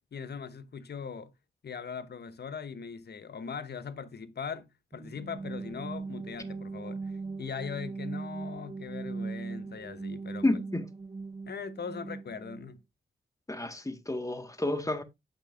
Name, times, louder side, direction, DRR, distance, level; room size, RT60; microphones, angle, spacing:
voice 1, 0.1-1.3 1.6-10.4 11.5-12.8, left 6 dB, 60° left, 0.9 m, -40 dB
sound 1, 4.9-12.7, right 4 dB, 25° right, 0.7 m, -39 dB
voice 2, 10.4-10.9 13.5-15.0, left 2 dB, 15° left, 1.6 m, -30 dB
8.2 x 6.6 x 2.5 m
supercardioid pair, 40°, 19 cm